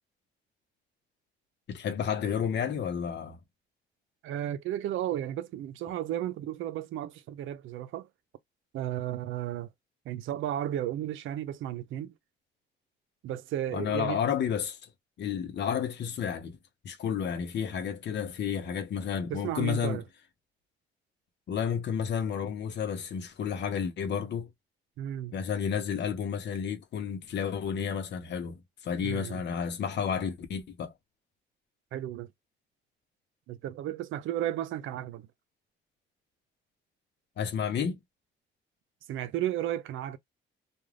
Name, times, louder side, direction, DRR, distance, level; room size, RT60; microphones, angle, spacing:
voice 1, 1.7-3.4 13.7-14.8 15.2-16.6 16.8-20.0 21.5-24.5 25.3-30.9 37.4-38.0, left 7 dB, 60° left, 0.8 m, -31 dB
voice 2, 4.2-8.1 8.7-9.7 10.1-12.1 13.2-14.2 19.3-20.0 25.0-25.4 29.0-29.4 31.9-32.3 33.5-35.3 39.1-40.2, right 12 dB, 80° right, 0.5 m, -33 dB
2.4 x 2.3 x 3.2 m
cardioid pair, 90°, 20 cm